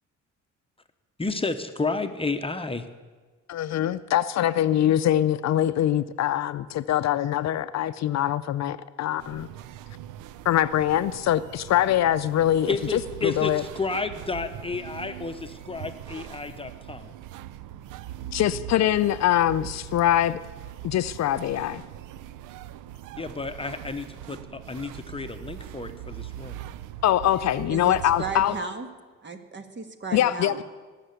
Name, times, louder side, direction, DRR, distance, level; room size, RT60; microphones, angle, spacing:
voice 1, 1.2-2.9 12.7-17.1 23.2-26.6, left 3 dB, 20° left, 8 dB, 0.9 m, -31 dB
voice 2, 3.5-9.5 10.4-13.6 18.3-20.4 20.8-21.8 27.0-28.5 30.1-30.6, left 12 dB, 60° left, 14 dB, 0.5 m, -23 dB
sound 1, 9.2-28.6, right 12 dB, 90° right, 0.5 m, -41 dB
voice 3, 27.7-28.9 29.2-30.6, right 4 dB, 40° right, 7 dB, 1.6 m, -35 dB
19.5 x 6.8 x 8.1 m, 1.4 s
cardioid pair, 90°, 30 cm